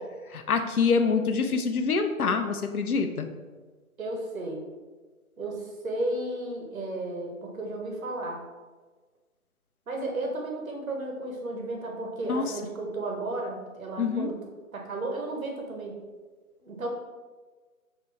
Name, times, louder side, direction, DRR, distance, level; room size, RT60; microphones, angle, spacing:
voice 1, 0.3-3.3 12.3-12.4 14.0-14.3, left 5 dB, 90° left, 7 dB, 0.7 m, -25 dB
voice 2, 4.0-4.6 5.4-8.4 9.9-14.4 14.7-15.9 16.6-16.9, right 2 dB, 70° right, 1 dB, 1.2 m, -33 dB
5.4 x 2.9 x 3.3 m, 1.4 s
figure-of-eight pair, 165°, 42 cm